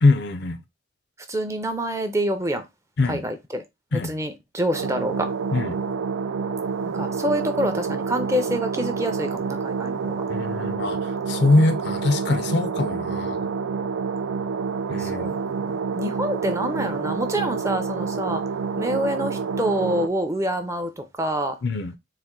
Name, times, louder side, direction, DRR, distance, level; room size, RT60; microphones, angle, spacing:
voice 1, 0.0-0.6 3.0-3.2 3.9-4.1 5.5-5.8 10.3-13.5 14.9-15.3 21.6-22.0, left 2 dB, 55° left, 0.5 m, -23 dB
voice 2, 1.3-2.6 3.1-3.6 3.9-5.3 6.8-10.2 15.0-18.4 18.8-21.6, equal, 15° right, 0.5 m, -27 dB
sound 1, 4.7-20.1, right 5 dB, 80° right, 0.4 m, -28 dB
4.1 x 2.5 x 3.7 m
head